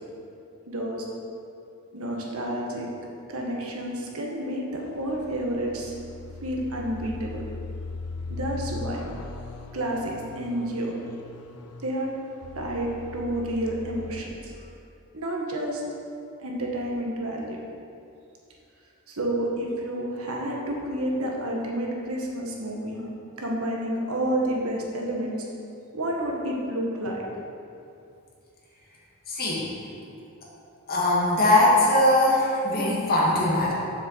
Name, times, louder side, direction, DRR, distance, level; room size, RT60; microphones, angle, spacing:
voice 1, 0.7-1.0 1.9-2.9 3.3-5.9 6.4-7.4 8.3-9.0 9.7-10.9 11.8-12.1 12.5-14.7 15.1-15.8 16.4-17.6 19.1-23.1 23.4-25.5 25.9-27.2, right 1 dB, 65° right, -1 dB, 1.6 m, -30 dB
sound 1, 4.8-14.2, left 3 dB, 90° left, 0.7 m, -39 dB
voice 2, 29.3-29.7 30.9-33.7, left 1 dB, 45° left, -4 dB, 2.3 m, -21 dB
7.4 x 6.8 x 7.4 m, 2.6 s
head